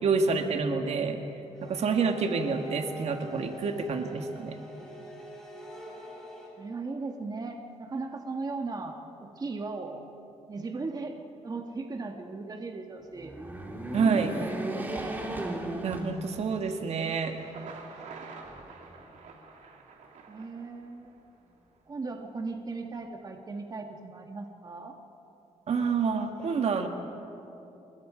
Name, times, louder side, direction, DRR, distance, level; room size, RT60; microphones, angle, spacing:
voice 1, 0.0-1.2 1.6-4.6 13.9-14.3 15.8-17.4 25.7-26.9, right 5 dB, 60° right, 5 dB, 1.7 m, -28 dB
sound 1, 1.5-6.5, equal, 5° left, 5.8 m, -45 dB
voice 2, 6.6-8.9 9.2-10.0 10.5-11.1 11.4-13.3 14.2-15.2 20.3-21.2 21.9-24.9, right 3 dB, 30° right, 3 dB, 1.5 m, -37 dB
sound 2, 13.1-16.7 17.2-17.3 18.4-19.2, right 1 dB, 15° right, 2.8 m, -36 dB
Thunder, 17.3-21.2, right 4 dB, 85° right, 2.5 m, -47 dB
28.5 x 21.5 x 5.1 m, 2.9 s
cardioid pair, 125°, 12 cm